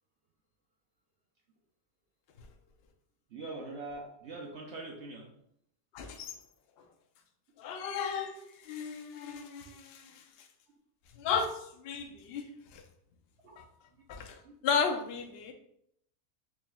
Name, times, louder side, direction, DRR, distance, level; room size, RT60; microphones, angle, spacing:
voice 1, 3.3-5.3 9.3-9.7 13.4-13.5 14.4-14.5, right 2 dB, 65° right, -1 dB, 0.7 m, -43 dB
voice 2, 5.9-6.3 7.6-10.2 11.2-12.5 12.7-12.8 13.6-13.7 14.1-14.3 14.6-15.5, left 6 dB, 90° left, 4 dB, 0.5 m, -34 dB
4.7 x 2.9 x 2.3 m, 0.73 s
omnidirectional pair, 1.7 m